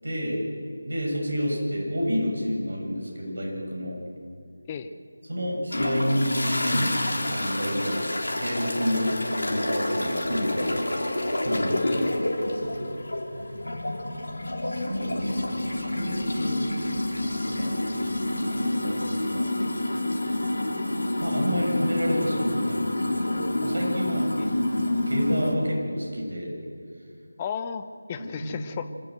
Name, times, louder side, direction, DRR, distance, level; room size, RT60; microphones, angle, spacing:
voice 1, 0.0-0.4 0.9-4.0 5.3-10.8 11.4-11.9 12.5-12.6 13.4-13.5 14.6-16.6 17.2-17.7 18.0-19.5 21.2-26.5 28.2-28.5, equal, 55° right, -1 dB, 7.0 m, -30 dB
sound 1, 5.7-25.5, left 1 dB, 65° left, 3.7 m, -28 dB
voice 2, 11.8-12.2 24.4-24.5 27.4-28.9, left 7 dB, 20° left, 9 dB, 0.9 m, -35 dB
26.5 x 14.0 x 7.8 m, 2.2 s
figure-of-eight pair, 160°, 0 cm